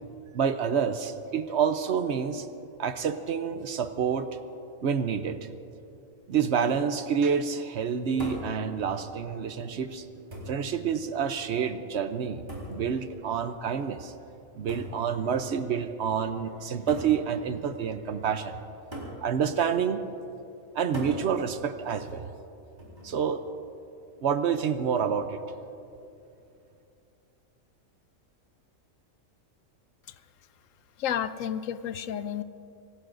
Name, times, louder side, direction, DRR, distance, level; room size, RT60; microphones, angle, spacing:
voice 1, 0.3-2.5 2.8-4.3 4.8-5.5 6.3-10.1 10.5-14.1 14.5-18.6 19.2-20.0 20.7-22.2 23.0-23.4 24.2-25.4, right 7 dB, 60° right, 10 dB, 0.9 m, -28 dB
sound 1, 8.2-8.6 9.6-9.7 10.3-10.7 12.5-12.8 14.7-15.0 16.0-16.1 16.9-17.2 18.9-19.2 20.9-21.2 22.8-23.2, equal, 35° right, 4.1 m, -38 dB
voice 2, 31.0-32.4, left 9 dB, 75° left, 13 dB, 1.0 m, -31 dB
26.5 x 19.0 x 2.6 m, 2.7 s
omnidirectional pair, 1.4 m